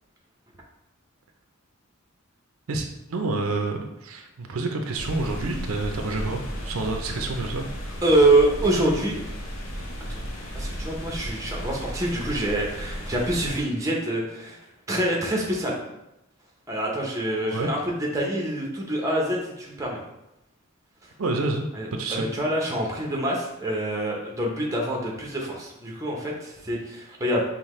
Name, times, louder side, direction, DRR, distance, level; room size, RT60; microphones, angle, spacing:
voice 1, 2.7-7.7 17.5-17.7 21.2-22.2, right 3 dB, 85° right, 4 dB, 0.5 m, -28 dB
sound 1, 4.9-13.6, equal, 75° left, 0.7 m, -34 dB
voice 2, 8.0-9.2 10.5-14.6 14.9-15.8 16.7-20.0 21.7-27.4, right 1 dB, 15° right, -2 dB, 0.7 m, -25 dB
5.5 x 2.1 x 3.1 m, 0.90 s
head